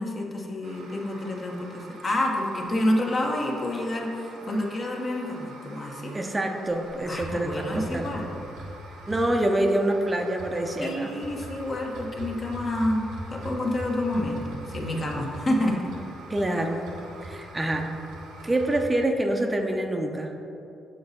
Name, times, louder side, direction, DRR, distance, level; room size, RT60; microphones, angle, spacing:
voice 1, 0.0-6.1 7.1-8.3 10.8-15.8, left 1 dB, 45° left, -1 dB, 1.1 m, -28 dB
sound 1, 0.6-18.8, right 1 dB, 80° right, 0.8 m, -42 dB
voice 2, 6.1-8.1 9.1-11.1 16.3-16.8 17.2-17.9 18.4-20.3, right 1 dB, 20° right, 3 dB, 0.6 m, -26 dB
6.7 x 4.0 x 4.1 m, 2.8 s
supercardioid pair, 60°, 0 cm